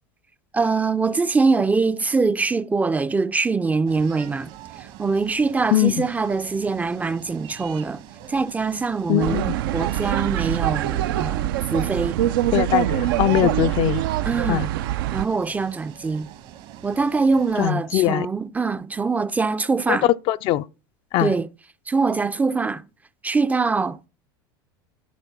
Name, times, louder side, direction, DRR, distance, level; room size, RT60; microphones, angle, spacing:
voice 1, 0.5-4.5 5.0-8.0 8.3-12.2 14.3-14.7 15.1-16.3 16.8-20.1 21.2-21.5 21.9-22.9 23.2-24.1, right 4 dB, 15° right, 0.4 m, -23 dB
sound 1, 3.9-17.7, right 11 dB, 60° right, 1.2 m, -43 dB
voice 2, 9.1-9.5 12.5-14.0 14.5-14.7 17.6-18.3 19.9-20.6 21.1-21.3, left 14 dB, 50° left, 0.4 m, -21 dB
sound 2, 9.2-15.3, right 13 dB, 80° right, 0.5 m, -24 dB
11.5 x 4.4 x 5.8 m
supercardioid pair, 115°, 11 cm